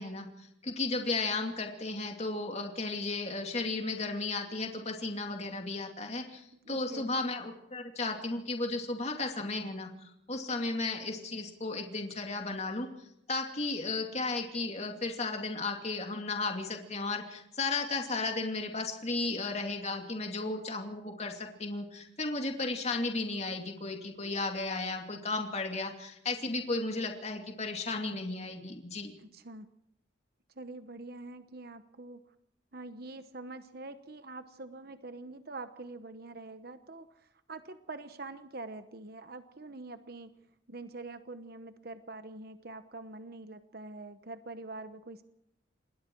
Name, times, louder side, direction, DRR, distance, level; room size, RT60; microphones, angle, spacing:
voice 1, 0.0-29.1, left 3 dB, 35° left, 3 dB, 2.5 m, -34 dB
voice 2, 6.6-7.1 29.2-29.7 30.6-32.3 32.7-40.4 40.7-45.2, right 2 dB, 50° right, 10 dB, 1.0 m, -45 dB
28.0 x 21.0 x 4.7 m, 0.80 s
head